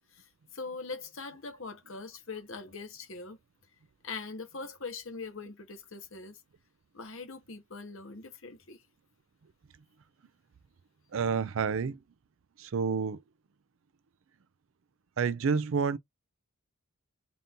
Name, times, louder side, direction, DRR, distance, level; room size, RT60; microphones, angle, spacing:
voice 1, 0.1-3.4 4.0-6.4 6.9-8.8, left 4 dB, 60° left, 1.2 m, -42 dB
voice 2, 11.1-12.0 12.6-13.2 15.2-16.0, right 5 dB, 60° right, 0.4 m, -29 dB
4.1 x 2.6 x 3.6 m
head